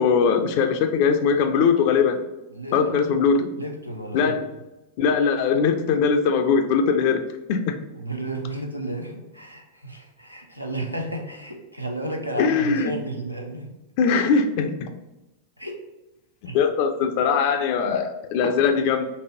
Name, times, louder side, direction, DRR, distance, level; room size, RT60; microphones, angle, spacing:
voice 1, 0.0-2.2 2.7-3.5 4.1-4.4 5.0-7.2 7.5-7.7 12.4-12.9 14.0-14.9 16.5-19.0, left 6 dB, 45° left, 7 dB, 0.4 m, -21 dB
voice 2, 2.5-3.0 3.6-4.4 7.9-13.8 15.6-15.8 16.5-16.6, right 1 dB, 90° right, 2 dB, 0.5 m, -32 dB
4.0 x 3.1 x 2.8 m, 0.99 s
figure-of-eight pair, 90°, 0 cm